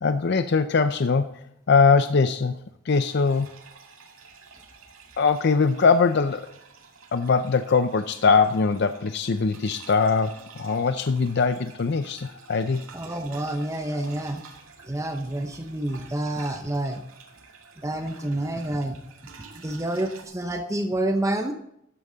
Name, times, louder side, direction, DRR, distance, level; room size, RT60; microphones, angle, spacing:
voice 1, 0.0-2.5 2.9-3.5 5.2-6.5 7.1-12.8, left 4 dB, 50° left, 10 dB, 0.5 m, -22 dB
sound 1, 2.9-20.2, right 5 dB, 75° right, 2.1 m, -49 dB
voice 2, 12.9-14.4 14.8-17.0 17.8-19.0 19.6-21.5, right 1 dB, 15° right, 5 dB, 0.8 m, -28 dB
13.0 x 9.5 x 3.9 m, 0.76 s
head